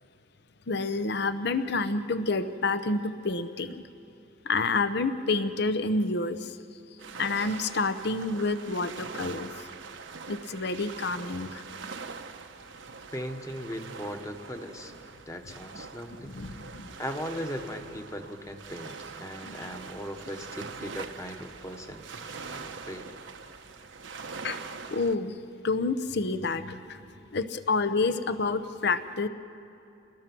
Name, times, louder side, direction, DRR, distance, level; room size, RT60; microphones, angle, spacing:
voice 1, 0.7-3.8 4.4-6.6 7.2-9.7 10.3-11.6 16.3-16.9 19.5-19.6 24.4-24.6 24.9-25.4 25.6-27.0 27.3-29.3, left 3 dB, 60° left, 11 dB, 0.8 m, -28 dB
sound 1, 7.0-25.2, right 5 dB, 85° right, 1.0 m, -43 dB
voice 2, 13.1-14.9 15.3-16.4 17.0-22.0 22.4-23.1, equal, 15° left, 5 dB, 1.2 m, -38 dB
29.5 x 20.0 x 6.1 m, 2.8 s
head